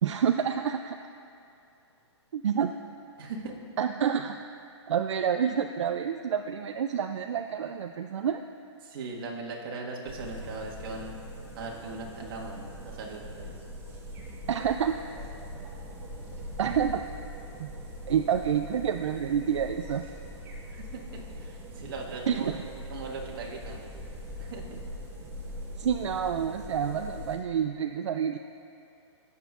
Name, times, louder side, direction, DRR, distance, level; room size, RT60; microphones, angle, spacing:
voice 1, 0.0-1.0 2.3-2.7 3.8-4.4 4.9-8.4 14.5-14.9 16.6-17.0 17.6-17.7 18.1-20.0 22.3-22.6 25.8-28.4, right 8 dB, 75° right, 6 dB, 0.4 m, -28 dB
voice 2, 3.2-3.5 8.8-11.2 11.5-13.5 20.9-22.5 22.9-23.9 24.4-24.7, right 3 dB, 50° right, -2 dB, 1.6 m, -39 dB
sound 1, 10.1-27.4, equal, 15° right, 1.2 m, -42 dB
17.5 x 7.2 x 2.4 m, 2.6 s
hypercardioid pair, 155°, 15 cm